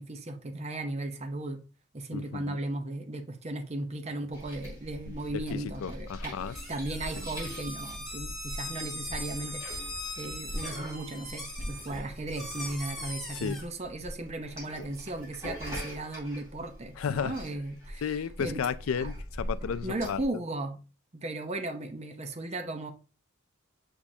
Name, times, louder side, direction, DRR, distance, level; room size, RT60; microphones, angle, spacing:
voice 1, 0.0-1.6 1.9-18.1 18.4-18.6 19.0-19.1 19.8-20.8 21.1-22.9, right 2 dB, 30° right, 0.7 m, -36 dB
voice 2, 2.1-2.6 5.1-6.6 13.3-13.6 17.0-17.4 18.0-20.2, left 7 dB, 85° left, 0.4 m, -33 dB
sound 1, 4.3-20.2, equal, 15° right, 3.2 m, -42 dB
sound 2, 6.5-13.6, left 1 dB, ahead, 1.9 m, -40 dB
7.0 x 5.2 x 2.7 m
head